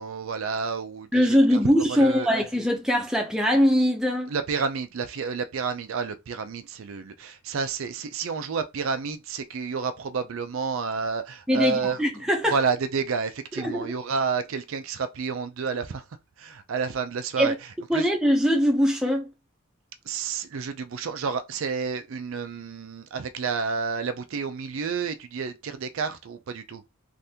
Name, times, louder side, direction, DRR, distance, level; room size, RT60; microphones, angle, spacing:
voice 1, 0.0-1.6 1.9-2.3 4.3-12.0 12.5-16.0 16.4-17.5 17.9-18.1 20.1-26.8, right 5 dB, 60° right, 0.4 m, -30 dB
voice 2, 1.1-4.3 11.5-12.6 13.5-13.9 17.4-17.6 17.9-19.3, equal, 5° right, 0.6 m, -22 dB
3.5 x 2.5 x 2.8 m
head